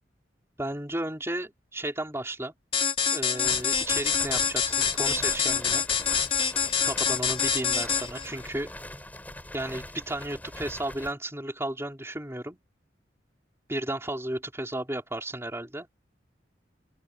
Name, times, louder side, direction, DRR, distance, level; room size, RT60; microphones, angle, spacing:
voice 1, 0.6-2.5 3.1-5.8 6.8-8.7 9.5-12.6 13.7-15.9, right 1 dB, 15° right, 4.8 m, -33 dB
sound 1, 2.7-8.3, left 7 dB, 35° left, 4.2 m, -26 dB
sound 2, 3.4-11.1, left 1 dB, 10° left, 6.4 m, -42 dB
open air
head